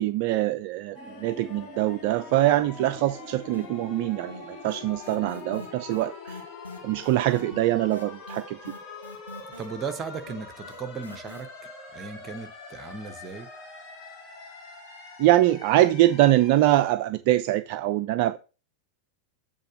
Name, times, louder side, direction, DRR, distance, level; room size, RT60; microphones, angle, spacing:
voice 1, 0.0-6.4 6.8-8.6 15.2-18.4, right 15 dB, 45° right, 0.3 m, -23 dB
sound 1, 0.9-16.9, left 3 dB, 30° left, 1.7 m, -43 dB
sound 2, 3.5-4.0 4.3-11.4, left 2 dB, 85° left, 1.4 m, -44 dB
voice 2, 9.6-11.5 11.9-13.5, right 5 dB, 25° right, 1.1 m, -36 dB
8.0 x 3.7 x 6.1 m
figure-of-eight pair, 90°, 0 cm